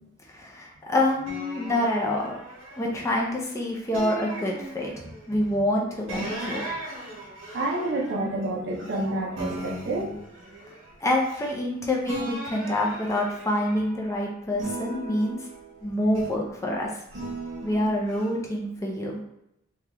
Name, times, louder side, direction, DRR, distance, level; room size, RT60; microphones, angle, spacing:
voice 1, 0.3-2.4 2.8-4.9 5.3-6.6 11.0-15.4 15.8-16.9 17.6-19.2, left 1 dB, 15° left, -1 dB, 0.4 m, -26 dB
sound 1, 1.2-3.4 3.9-5.3 6.1-9.0 9.4-11.7 12.0-14.1 14.5-16.5 17.1-18.3, right 1 dB, 75° right, 1.0 m, -38 dB
voice 2, 7.5-10.1, right 2 dB, 55° right, -1 dB, 0.6 m, -29 dB
3.3 x 2.3 x 2.8 m, 0.81 s
head